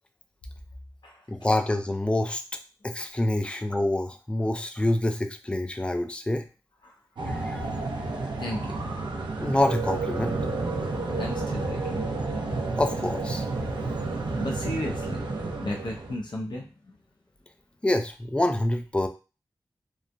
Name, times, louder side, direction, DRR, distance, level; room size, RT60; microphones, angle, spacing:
voice 1, 1.3-2.4 2.8-6.4 7.3-7.6 9.4-10.3 12.8-13.5 17.8-19.1, left 1 dB, 15° left, 6 dB, 0.4 m, -26 dB
sound 1, 7.2-16.2, right 3 dB, 80° right, 0.5 m, -30 dB
voice 2, 8.4-8.8 11.2-12.0 14.2-15.2 15.6-16.9, left 1 dB, 70° left, 0 dB, 0.6 m, -35 dB
3.0 x 2.2 x 2.5 m, 0.33 s
cardioid pair, 50°, 8 cm